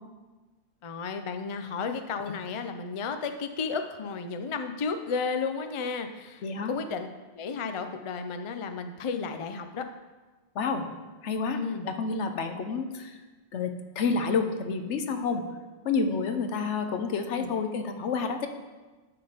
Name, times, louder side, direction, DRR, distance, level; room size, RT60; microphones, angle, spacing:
voice 1, 0.8-7.1 7.4-9.9 11.5-11.9 17.3-17.5, left 5 dB, 50° left, 7 dB, 0.4 m, -33 dB
voice 2, 6.4-6.7 10.5-10.9 11.2-11.6 11.8-13.2 13.5-15.4 15.8-18.5, left 4 dB, 75° left, 7 dB, 1.1 m, -29 dB
11.5 x 3.9 x 5.0 m, 1.3 s
omnidirectional pair, 1.2 m